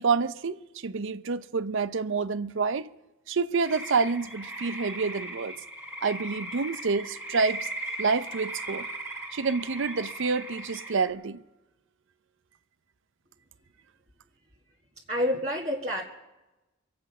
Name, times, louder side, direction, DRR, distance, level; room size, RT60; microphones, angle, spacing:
voice 1, 0.0-2.9 3.3-5.5 6.0-7.7 8.0-8.9 9.3-11.4, right 4 dB, 65° right, 0.6 m, -28 dB
sound 1, 3.6-11.1, right 1 dB, 10° right, 2.3 m, -38 dB
voice 2, 15.1-16.0, equal, 35° right, 1.6 m, -28 dB
24.5 x 8.6 x 5.5 m
head